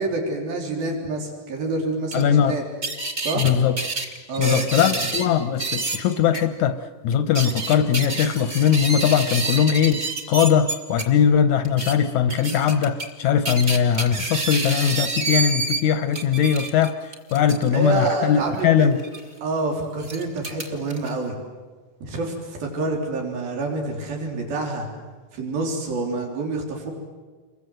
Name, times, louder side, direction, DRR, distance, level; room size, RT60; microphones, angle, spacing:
voice 1, 0.0-2.6 3.2-3.5 4.3-5.3 17.6-18.9 19.4-21.3 22.0-24.9 25.3-26.9, right 3 dB, 85° right, 1 dB, 5.4 m, -27 dB
voice 2, 2.1-2.6 3.4-3.8 4.4-6.8 7.0-16.9 17.3-19.0, left 8 dB, 70° left, 10 dB, 1.9 m, -20 dB
sound 1, 2.1-2.2 2.8-3.5 3.8-5.3 5.6-6.0 6.3-6.4 7.1-11.0 11.6-11.9 12.3-13.1 13.5-15.8 16.1-17.7 19.0-19.2 20.0-21.1, right 3 dB, 25° right, 2.5 m, -28 dB
29.0 x 23.0 x 7.9 m, 1.4 s
omnidirectional pair, 4.1 m